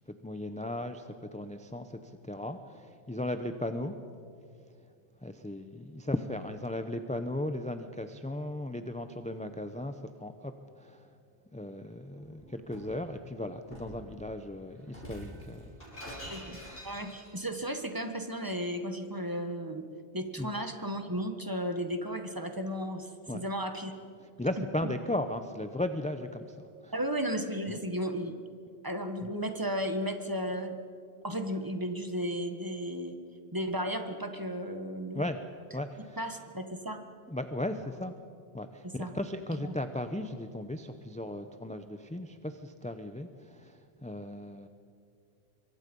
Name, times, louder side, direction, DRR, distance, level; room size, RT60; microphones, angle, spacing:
voice 1, 0.0-4.0 5.2-11.1 11.5-15.7 16.1-16.3 20.4-20.5 23.3-23.4 24.4-26.9 27.7-27.8 29.2-29.3 35.1-35.4 35.7-36.2 37.3-38.1 38.5-44.7, left 1 dB, 10° left, 7 dB, 0.7 m, -36 dB
Shatter, 12.1-13.0 13.7-14.0 14.9-17.5, equal, 55° left, 6.3 m, -45 dB
voice 2, 16.8-19.8 20.1-23.9 26.9-28.3 28.8-30.8 31.2-33.1 33.5-35.3 36.2-37.0 38.8-39.1 39.6-39.8, equal, 20° right, 6 dB, 1.5 m, -34 dB
26.0 x 23.5 x 5.4 m, 2.3 s
omnidirectional pair, 1.1 m